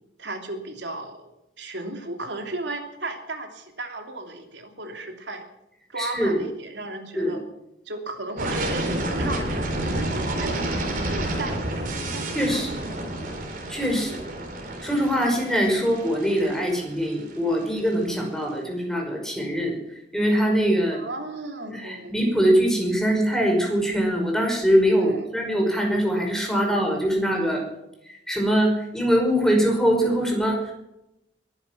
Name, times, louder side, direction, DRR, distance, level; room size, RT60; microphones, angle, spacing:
voice 1, 0.2-1.3 1.6-5.4 5.9-7.4 7.8-10.7 11.1-13.0 20.9-22.3 25.0-25.2, right 2 dB, 85° right, 4 dB, 3.1 m, -35 dB
voice 2, 6.0-6.4 7.2-7.3 12.3-12.7 13.7-14.2 14.8-19.8 20.1-21.0 21.7-27.6 28.3-30.7, equal, 5° left, 1 dB, 5.3 m, -22 dB
sound 1, 8.4-18.2, right 1 dB, 50° right, 4.1 m, -30 dB
22.0 x 11.0 x 6.0 m, 0.85 s
head